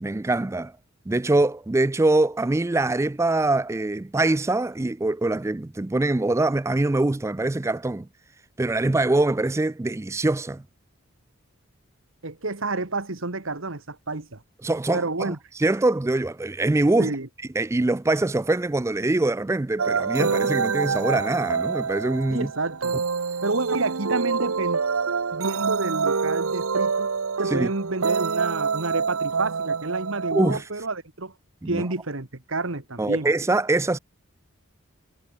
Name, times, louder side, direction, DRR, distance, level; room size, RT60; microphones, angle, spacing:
voice 1, 0.0-0.7 1.1-8.1 8.6-10.6 14.6-17.1 17.6-22.5 27.5-27.7 30.3-30.6 31.6-31.8 33.0-34.0, right 2 dB, 15° right, 0.3 m, -23 dB
voice 2, 12.2-14.4 14.9-15.4 17.0-17.3 22.3-23.0 23.4-24.8 25.3-27.1 27.4-31.3 31.7-33.3, right 3 dB, 70° right, 1.9 m, -29 dB
sound 1, 19.8-30.5, right 5 dB, 85° right, 0.9 m, -26 dB
head